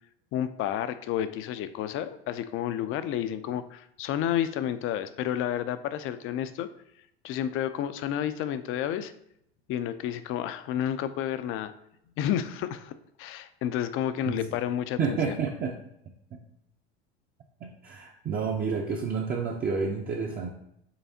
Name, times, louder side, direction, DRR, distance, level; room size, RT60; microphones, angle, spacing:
voice 1, 0.3-6.7 7.2-9.1 9.7-11.7 12.2-15.4, left 10 dB, 40° left, 12 dB, 0.4 m, -30 dB
voice 2, 15.0-15.7 17.6-20.5, right 5 dB, 30° right, 0 dB, 0.5 m, -29 dB
5.7 x 3.3 x 2.7 m, 0.75 s
hypercardioid pair, 85°, 33 cm